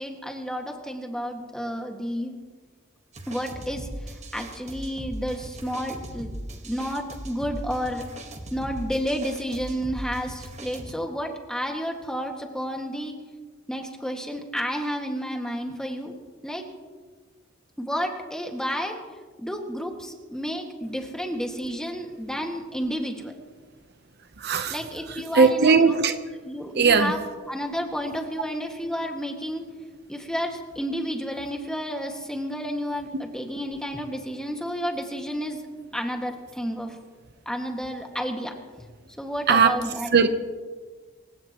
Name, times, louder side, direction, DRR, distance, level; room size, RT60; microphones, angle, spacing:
voice 1, 0.0-2.4 3.3-3.9 4.3-6.3 6.6-8.1 8.5-13.1 13.7-16.1 16.4-16.7 17.8-19.0 19.4-23.3 24.7-26.0 26.5-27.2 27.5-29.6 30.1-35.6 35.9-37.0 37.5-38.6 39.2-40.1, equal, 5° left, 2 dB, 1.9 m, -31 dB
sound 1, 3.1-10.9, right 1 dB, 35° right, 1.5 m, -38 dB
voice 2, 24.4-24.8 25.1-26.1 26.8-27.1 33.1-33.2 39.5-39.8 40.1-40.3, right 5 dB, 55° right, 9 dB, 0.9 m, -19 dB
26.5 x 16.0 x 3.0 m, 1.4 s
head